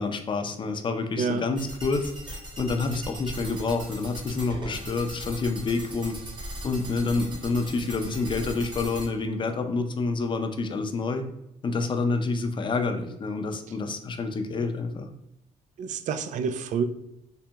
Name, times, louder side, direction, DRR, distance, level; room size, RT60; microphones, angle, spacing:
voice 1, 0.0-6.2 6.6-11.2 11.6-15.1, left 3 dB, 35° left, 6 dB, 0.5 m, -28 dB
sound 1, 1.6-9.1, right 1 dB, 35° right, 1.5 m, -39 dB
voice 2, 15.8-16.8, right 6 dB, 65° right, 10 dB, 0.4 m, -28 dB
3.5 x 3.2 x 2.8 m, 0.82 s
cardioid pair, 100°, 14 cm